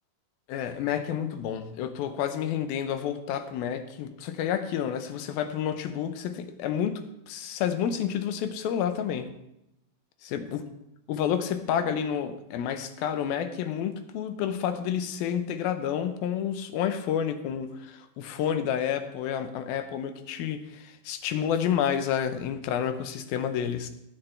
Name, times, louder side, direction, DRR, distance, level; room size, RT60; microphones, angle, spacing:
voice 1, 0.5-7.0 7.3-9.3 10.2-10.7 11.1-23.9, left 9 dB, 80° left, 9 dB, 2.6 m, -29 dB
18.0 x 8.3 x 3.3 m, 0.85 s
omnidirectional pair, 4.3 m